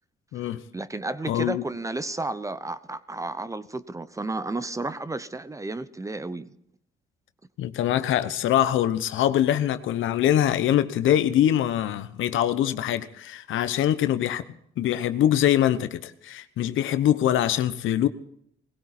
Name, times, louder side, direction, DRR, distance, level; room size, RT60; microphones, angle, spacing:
voice 1, 0.3-6.5, right 2 dB, 15° right, 0.9 m, -32 dB
voice 2, 1.3-1.6 7.6-14.4 14.8-18.1, left 11 dB, 80° left, 1.0 m, -23 dB
20.0 x 16.5 x 4.3 m
cardioid pair, 90°, 20 cm